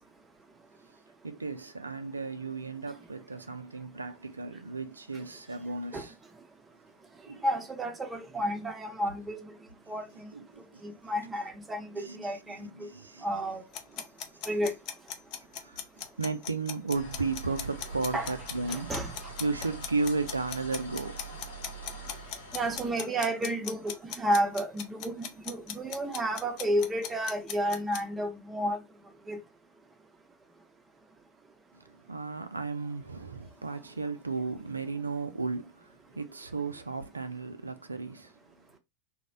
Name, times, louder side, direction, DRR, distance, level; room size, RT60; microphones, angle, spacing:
voice 1, 1.2-6.1 7.3-7.4 9.9-10.0 10.3-11.0 11.9-13.3 15.3-15.9 16.2-19.0 19.4-21.2 31.7-38.4, right 3 dB, 80° right, 0.3 m, -35 dB
voice 2, 7.4-9.5 9.9-10.3 10.8-12.9 13.2-13.6 14.5-14.7 18.1-18.3 18.7-19.1 22.5-28.8 29.3-29.4, right 1 dB, 15° right, 0.5 m, -31 dB
sound 1, 13.7-28.0, left 9 dB, 45° left, 0.4 m, -38 dB
sound 2, 16.9-22.9, right 3 dB, 75° left, 0.8 m, -44 dB
2.6 x 2.1 x 2.3 m
figure-of-eight pair, 90°, 0 cm